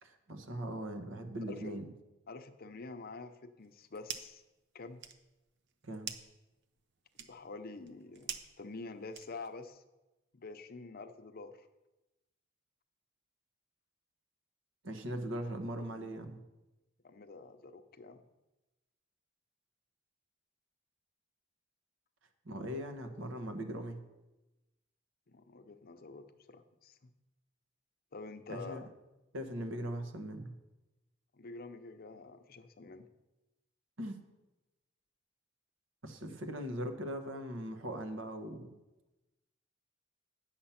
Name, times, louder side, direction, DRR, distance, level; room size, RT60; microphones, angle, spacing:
voice 1, 0.0-1.9 5.8-6.1 14.8-16.4 22.4-24.0 28.5-28.8 29.3-30.5 34.0-34.2 36.0-38.7, equal, 80° right, 6 dB, 1.2 m, -40 dB
voice 2, 1.5-1.8 2.3-4.4 4.7-5.0 7.2-9.8 10.3-11.7 17.0-18.2 25.3-27.1 28.1-28.9 31.3-33.1, left 3 dB, 50° left, 9 dB, 0.7 m, -47 dB
sound 1, 3.6-4.5 4.8-9.7, right 8 dB, 60° right, 0.7 m, -47 dB
8.7 x 7.2 x 5.8 m, 1.0 s
head